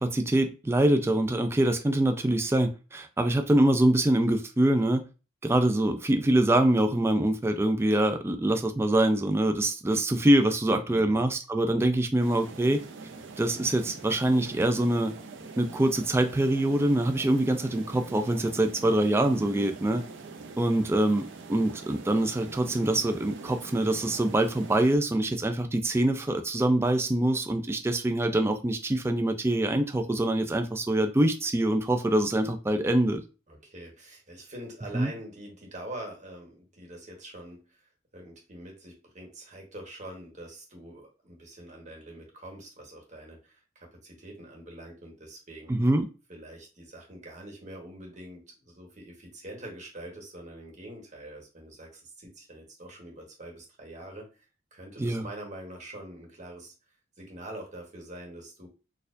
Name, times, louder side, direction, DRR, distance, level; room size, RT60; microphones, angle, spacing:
voice 1, 0.0-5.0 5.4-12.8 13.4-15.1 15.6-20.0 20.6-33.2 34.9-35.1 45.7-46.1 55.0-55.2, right 1 dB, 15° right, 6 dB, 0.3 m, -24 dB
voice 2, 10.8-11.3 33.5-45.7 46.3-54.4 54.7-56.7 57.2-58.7, right 1 dB, 40° right, 0 dB, 1.2 m, -44 dB
sound 1, 12.2-25.0, right 3 dB, 70° right, 0.5 m, -44 dB
4.2 x 2.3 x 2.5 m, 0.32 s
head